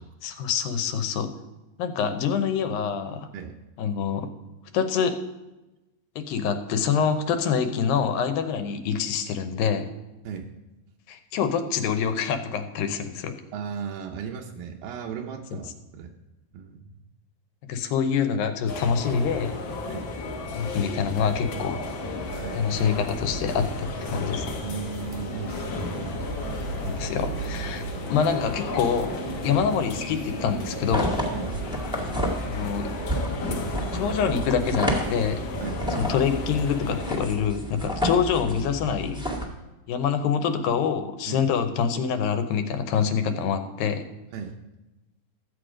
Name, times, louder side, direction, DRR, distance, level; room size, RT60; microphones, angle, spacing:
voice 1, 0.2-1.3 1.8-3.3 3.8-4.3 4.7-5.2 6.2-9.9 11.1-13.3 17.7-19.5 20.5-21.8 22.5-24.6 26.8-27.8 28.1-29.1 29.4-31.3 32.4-32.9 33.9-35.5 36.0-39.3 39.9-44.0, left 7 dB, 90° left, 7 dB, 2.6 m, -26 dB
voice 2, 13.5-16.1 16.5-17.0 19.8-20.1 22.3-22.6 24.6-26.2 31.3-31.5 35.6-35.8 41.3-41.4 44.3-44.6, right 6 dB, 80° right, 1 dB, 2.5 m, -36 dB
sound 1, 18.7-37.2, left 2 dB, 70° left, 1.1 m, -34 dB
sound 2, 22.2-35.5, right 5 dB, 65° right, 1.7 m, -38 dB
sound 3, 30.9-39.5, equal, 5° right, 0.4 m, -31 dB
13.5 x 7.9 x 4.9 m, 1.0 s
omnidirectional pair, 4.0 m